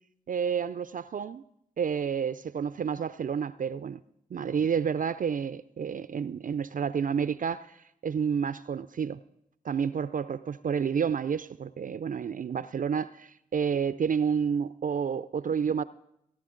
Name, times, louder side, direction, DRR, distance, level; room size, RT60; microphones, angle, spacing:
voice 1, 0.3-1.4 1.8-4.0 4.3-7.8 8.0-9.2 9.6-15.8, right 7 dB, 50° right, 0.4 m, -30 dB
18.0 x 10.0 x 3.8 m
supercardioid pair, 40°, 18 cm